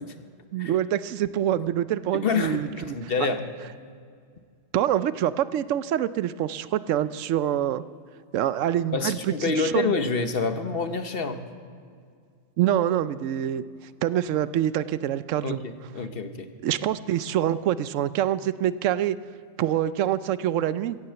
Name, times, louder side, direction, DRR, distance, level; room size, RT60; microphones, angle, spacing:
voice 1, 0.5-3.0 4.7-7.8 8.3-9.9 12.6-13.6 14.0-15.6 16.6-19.2 19.6-21.0, right 11 dB, 85° right, 15 dB, 0.9 m, -25 dB
voice 2, 2.1-3.4 8.9-11.4 15.4-16.5, left 4 dB, 50° left, 8 dB, 1.1 m, -27 dB
15.5 x 9.8 x 7.9 m, 2.2 s
omnidirectional pair, 1.3 m